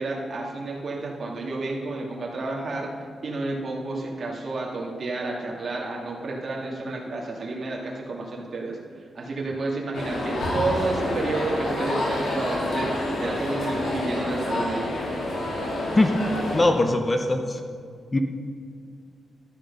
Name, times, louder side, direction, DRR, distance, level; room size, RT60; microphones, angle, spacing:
voice 1, 0.0-2.9 3.2-8.8 9.1-14.9, right 2 dB, 45° right, -2 dB, 2.4 m, -30 dB
sound 1, 9.9-16.6, left 1 dB, 80° left, 3.4 m, -28 dB
voice 2, 16.5-17.6 18.1-18.2, left 2 dB, 20° left, 5 dB, 0.8 m, -21 dB
12.5 x 10.5 x 5.4 m, 2.1 s
wide cardioid pair, 130°, 0 cm